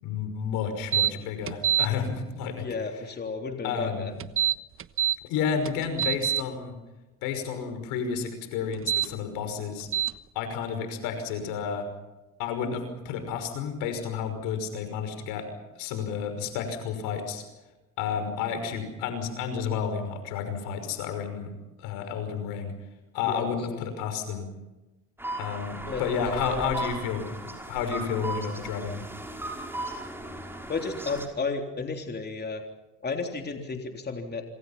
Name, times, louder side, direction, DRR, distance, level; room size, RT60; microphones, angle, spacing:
voice 1, 0.0-2.7 3.6-4.1 5.2-6.8 7.2-9.9 10.3-11.9 12.4-15.5 15.8-17.4 18.0-21.5 21.8-22.7 23.1-24.5 25.4-29.0, left 6 dB, 75° left, 8 dB, 5.7 m, -31 dB
sound 1, 0.9-1.1 1.5-1.9 4.2-5.2 5.7-6.4 8.7-9.1 9.9-10.1, right 11 dB, 40° right, 1.2 m, -24 dB
voice 2, 2.6-4.1 23.2-23.8 25.9-26.6 30.7-32.6 33.0-34.4, left 4 dB, 30° left, 4 dB, 3.6 m, -33 dB
sound 2, 25.2-31.3, right 1 dB, 5° right, 5.6 m, -37 dB
26.5 x 26.5 x 5.8 m, 1.1 s
supercardioid pair, 80°, 33 cm